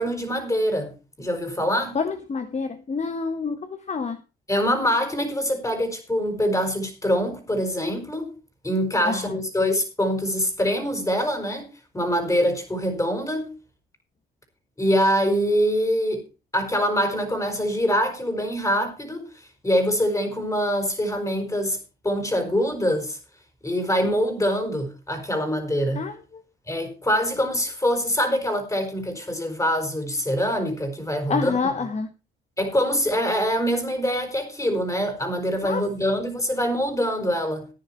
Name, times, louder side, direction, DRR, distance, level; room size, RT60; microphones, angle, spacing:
voice 1, 0.0-2.0 4.5-8.3 8.6-11.7 11.9-13.5 14.8-16.2 16.5-21.8 22.0-23.2 23.6-26.0 26.7-31.5 32.6-37.7, equal, 15° left, 5.0 m, -24 dB
voice 2, 1.9-4.2 9.0-9.4 25.9-26.4 31.3-32.1 35.6-35.8, left 5 dB, 35° left, 1.3 m, -28 dB
14.0 x 9.9 x 4.3 m
cardioid pair, 90°, 20 cm